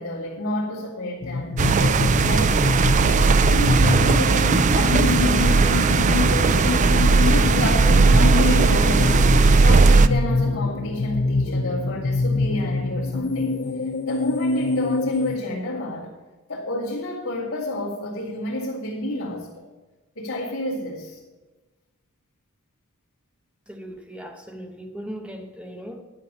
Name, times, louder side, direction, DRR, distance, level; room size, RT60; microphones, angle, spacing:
voice 1, 0.0-2.6 3.1-5.7 7.2-13.5 14.1-16.1 16.5-19.7 20.2-21.2, left 1 dB, 70° left, 2.2 m, -30 dB
sound 1, 1.2-15.4, left 3 dB, 45° left, 0.4 m, -25 dB
rain storm, 1.6-10.1, right 4 dB, 35° right, 0.3 m, -17 dB
voice 2, 23.7-26.0, equal, 5° right, 0.9 m, -38 dB
11.0 x 5.5 x 8.3 m
head